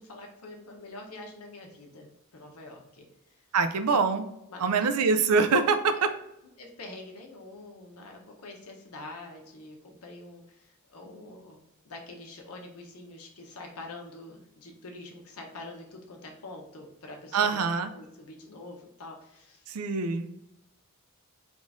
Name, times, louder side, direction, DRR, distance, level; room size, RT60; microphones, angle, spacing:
voice 1, 0.0-3.4 4.5-4.9 6.0-6.1 6.6-17.6 17.9-19.7, left 2 dB, 80° left, 1 dB, 0.9 m, -45 dB
voice 2, 3.5-4.3 4.6-6.1 17.3-17.9 19.7-20.3, right 4 dB, 85° right, 10 dB, 0.4 m, -24 dB
3.7 x 2.5 x 3.6 m, 0.83 s
head